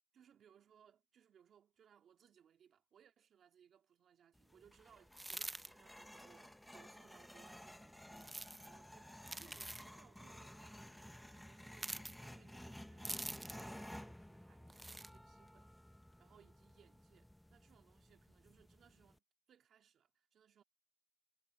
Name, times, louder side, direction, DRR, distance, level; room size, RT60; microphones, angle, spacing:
voice 1, 0.1-9.1 9.4-15.8 16.2-20.6, right 8 dB, 65° right, 2.1 m, -68 dB
sound 1, 4.4-19.2, equal, 5° left, 0.9 m, -55 dB
sound 2, 5.1-5.7 8.2-8.7 9.2-9.9 11.7-12.1 13.0-13.7 14.7-15.1, right 2 dB, 15° right, 0.5 m, -45 dB
cardioid pair, 90°, 0 cm